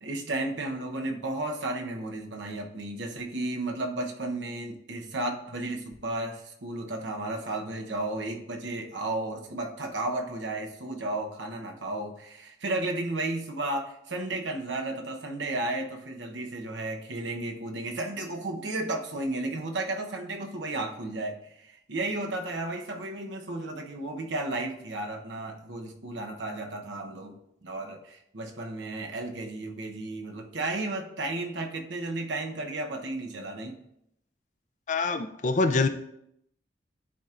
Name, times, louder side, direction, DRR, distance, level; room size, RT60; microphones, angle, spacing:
voice 1, 0.0-33.8, right 2 dB, 80° right, 3 dB, 0.9 m, -33 dB
voice 2, 34.9-35.9, left 3 dB, 40° left, 9 dB, 0.4 m, -25 dB
11.0 x 4.4 x 2.5 m, 0.77 s
head